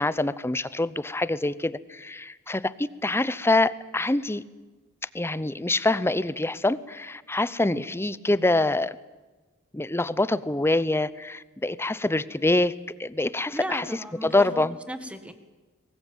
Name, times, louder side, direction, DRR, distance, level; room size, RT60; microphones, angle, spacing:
voice 1, 0.0-4.4 5.1-9.0 9.7-12.7 13.0-13.9 14.2-14.8, left 2 dB, 10° left, 17 dB, 0.7 m, -25 dB
voice 2, 13.5-14.6 14.9-15.3, equal, 5° right, 10 dB, 1.8 m, -35 dB
23.5 x 20.5 x 9.2 m, 1.2 s
head